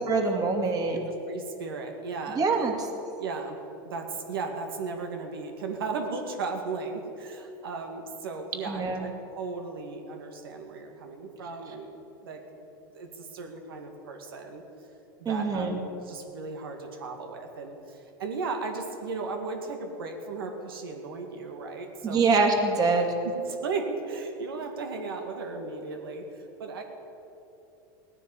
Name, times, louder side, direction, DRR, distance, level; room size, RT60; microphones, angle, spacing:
voice 1, 0.1-1.0 2.4-2.7 8.7-9.1 15.3-15.8 22.0-23.1, right 4 dB, 30° right, 3 dB, 2.5 m, -24 dB
voice 2, 0.9-2.4 3.2-11.9 12.2-12.7 12.9-14.6 15.2-22.2 23.2-26.8, right 4 dB, 85° right, 4 dB, 2.2 m, -36 dB
16.5 x 10.0 x 8.4 m, 3.0 s
hypercardioid pair, 110°, 12 cm